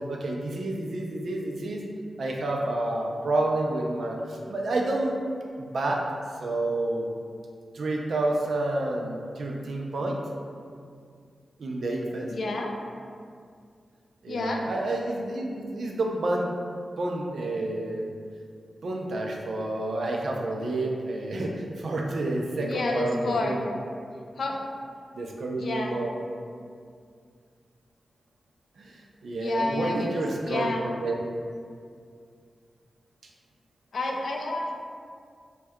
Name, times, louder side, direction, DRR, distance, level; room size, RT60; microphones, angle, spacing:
voice 1, 0.0-1.8 2.2-5.2 5.6-6.1 6.4-7.1 7.7-10.2 11.6-12.3 14.2-16.6 17.0-18.1 18.8-23.6 25.2-26.1 28.8-31.1, right 2 dB, 75° right, 0 dB, 0.4 m, -29 dB
voice 2, 12.3-12.7 14.3-14.7 22.6-23.6 24.4-24.6 25.6-26.0 29.4-30.9 33.9-34.7, left 2 dB, 70° left, 1 dB, 0.3 m, -29 dB
2.7 x 2.2 x 3.4 m, 2.2 s
wide cardioid pair, 100°, 0 cm